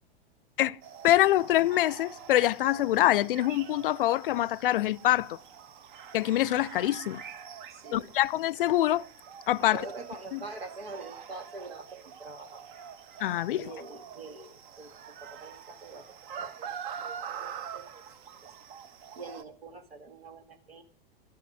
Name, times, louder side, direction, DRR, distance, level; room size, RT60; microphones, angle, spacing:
sound 1, 0.8-19.4, right 8 dB, 55° right, 1.2 m, -45 dB
voice 1, 1.0-5.4 6.1-7.2 7.9-9.1 9.5-9.8 10.3-10.4 13.2-13.7, left 14 dB, 65° left, 0.5 m, -25 dB
voice 2, 7.7-8.1 9.6-12.6 13.5-18.2 19.2-20.8, right 3 dB, 85° right, 2.2 m, -45 dB
12.5 x 11.5 x 6.2 m
figure-of-eight pair, 95°, 30 cm